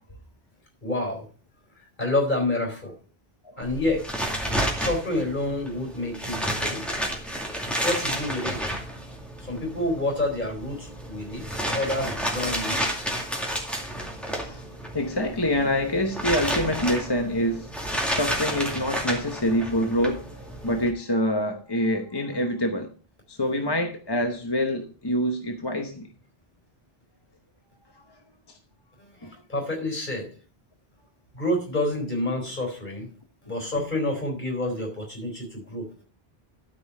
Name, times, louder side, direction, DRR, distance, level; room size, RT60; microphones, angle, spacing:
voice 1, 0.8-1.3 2.0-2.9 3.6-4.1 4.8-6.8 7.7-8.8 9.4-13.1 29.0-29.1 29.5-30.3 31.3-33.1 33.4-35.9, left 1 dB, 50° left, 4.5 m, -28 dB
sound 1, 3.6-20.9, equal, ahead, 2.4 m, -31 dB
voice 2, 14.3-14.7 14.9-17.7 18.1-22.9 23.3-26.1 29.2-29.3, equal, 25° left, 1.0 m, -26 dB
13.0 x 5.5 x 5.4 m
omnidirectional pair, 1.1 m